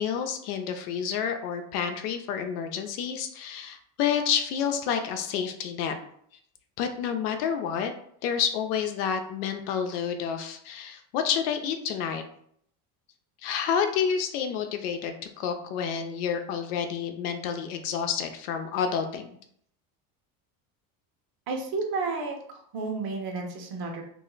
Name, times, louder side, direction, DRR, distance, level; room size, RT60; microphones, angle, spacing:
voice 1, 0.0-6.0 6.8-7.9 8.2-12.2 13.4-19.4, left 7 dB, 85° left, 6 dB, 0.7 m, -29 dB
voice 2, 21.5-24.0, right 3 dB, 50° right, 2 dB, 1.0 m, -32 dB
2.7 x 2.1 x 3.8 m, 0.67 s
supercardioid pair, 100°, 45 cm